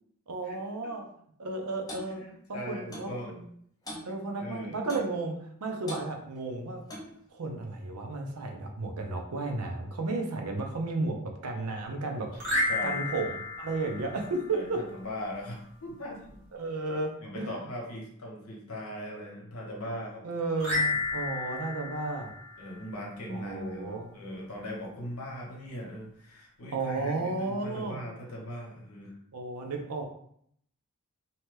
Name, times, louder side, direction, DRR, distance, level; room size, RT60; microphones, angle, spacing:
voice 1, 0.3-1.0 1.4-2.2 2.5-3.4 4.0-6.8 7.3-14.8 16.5-17.5 20.2-22.3 23.3-24.1 26.7-28.0 29.3-30.0, right 3 dB, 85° right, 3 dB, 0.6 m, -33 dB
Clock, 1.9-2.1 2.9-3.1 3.9-4.1 4.9-5.1 5.9-6.1 6.9-7.2, equal, 15° left, 0.5 m, -41 dB
voice 2, 2.2-3.3 4.4-4.8 12.7-13.0 14.5-16.2 17.2-20.2 22.6-29.1, equal, 70° left, -2 dB, 0.9 m, -39 dB
sound 1, 12.3-14.8 20.6-23.2, left 2 dB, 60° right, 0.8 m, -32 dB
2.8 x 2.2 x 3.2 m, 0.67 s
head